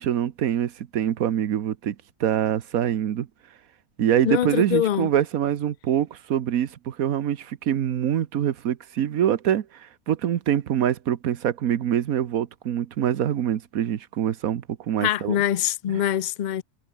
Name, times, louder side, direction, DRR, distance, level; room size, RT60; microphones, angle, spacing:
voice 1, 0.0-3.3 4.0-15.4 15.9-16.0, right 10 dB, 85° right, 1.4 m, -25 dB
voice 2, 4.2-5.1 15.0-16.6, left 11 dB, 60° left, 0.4 m, -24 dB
omnidirectional pair, 1.4 m